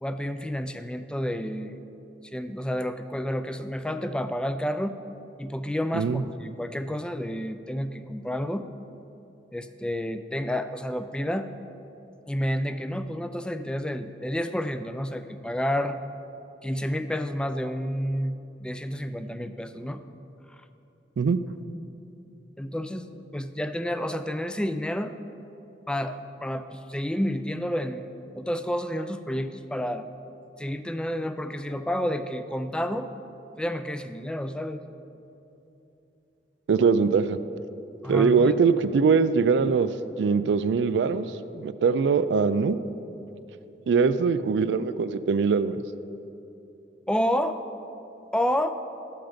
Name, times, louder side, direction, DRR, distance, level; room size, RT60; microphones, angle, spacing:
voice 1, 0.0-1.7 2.3-5.0 5.4-8.7 9.5-11.5 12.3-16.0 16.6-20.0 22.6-23.1 23.3-25.1 25.9-28.1 28.3-30.1 30.6-33.1 33.6-34.8 38.0-38.6 47.1-47.6 48.3-48.7, equal, 5° left, 10 dB, 0.3 m, -30 dB
voice 2, 36.7-37.4 38.1-39.9 40.2-41.3 41.5-42.8 43.9-45.8, right 5 dB, 85° right, 14 dB, 0.3 m, -22 dB
13.0 x 5.8 x 5.1 m, 2.9 s
head